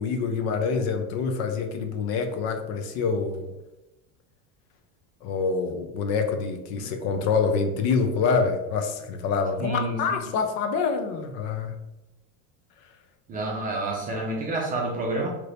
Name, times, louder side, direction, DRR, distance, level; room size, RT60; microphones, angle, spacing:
voice 1, 0.0-3.5 5.2-11.8, left 5 dB, 50° left, 6 dB, 0.5 m, -26 dB
voice 2, 9.6-10.0 13.3-15.3, right 2 dB, 25° right, -2 dB, 0.5 m, -29 dB
2.9 x 2.5 x 3.2 m, 0.98 s
cardioid pair, 160°, 36 cm